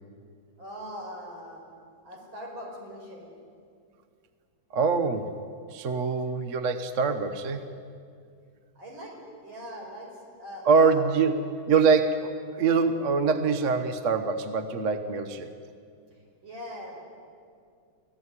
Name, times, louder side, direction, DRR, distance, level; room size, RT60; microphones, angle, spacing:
voice 1, 0.6-1.6 2.0-3.3 8.8-9.1 9.4-11.0 16.4-17.0, equal, 65° right, -1 dB, 5.8 m, -41 dB
voice 2, 4.7-5.4 5.7-7.7 10.6-11.3 11.7-15.5, right 5 dB, 45° right, 9 dB, 1.1 m, -24 dB
24.5 x 16.5 x 9.6 m, 2.3 s
omnidirectional pair, 2.3 m